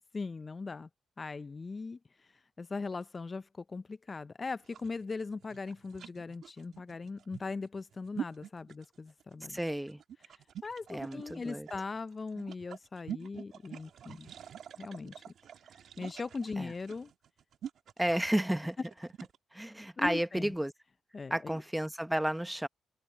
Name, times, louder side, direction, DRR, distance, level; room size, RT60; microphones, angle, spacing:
voice 1, 0.1-0.9 1.2-9.6 10.2-14.3 14.8-15.2 16.0-17.1 20.0-20.5 21.1-21.6, left 4 dB, 35° left, 0.5 m, -40 dB
sound 1, 4.6-19.4, right 9 dB, 65° right, 2.3 m, -46 dB
voice 2, 9.5-10.0 10.9-11.7 16.6-16.7 18.0-18.8 19.5-20.7 21.3-22.7, right 1 dB, 5° right, 1.1 m, -32 dB
supercardioid pair, 50°, 0 cm